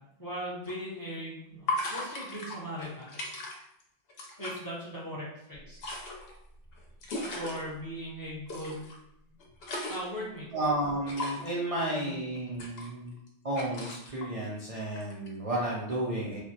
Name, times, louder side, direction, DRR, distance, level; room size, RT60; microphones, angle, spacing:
voice 1, 0.2-3.2 4.4-5.8 7.3-8.9 9.9-10.5 12.0-12.1, equal, 20° left, -7 dB, 0.7 m, -39 dB
sound 1, 0.6-0.7 1.7-3.8 4.1-4.6 5.5-7.6 8.5-9.0 9.3-10.2 11.1-11.5 12.4-13.3 13.6-14.3 15.0-15.3, left 2 dB, 65° left, 0.8 m, -37 dB
voice 2, 10.5-13.1 13.4-16.4, right 1 dB, 50° right, -4 dB, 0.4 m, -32 dB
3.2 x 2.0 x 2.7 m, 0.79 s
omnidirectional pair, 1.2 m